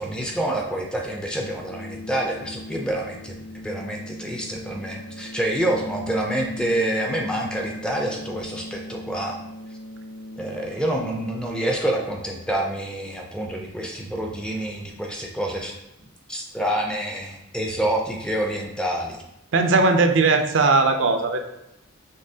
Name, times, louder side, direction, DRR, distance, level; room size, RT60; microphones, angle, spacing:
voice 1, 0.0-9.4 10.4-15.7 16.3-19.2, right 1 dB, 5° left, 0 dB, 0.4 m, -27 dB
sound 1, 1.6-11.6, left 1 dB, 60° left, 1.0 m, -38 dB
voice 2, 19.5-21.4, right 3 dB, 65° right, 5 dB, 0.4 m, -18 dB
5.3 x 3.3 x 2.7 m, 0.84 s
head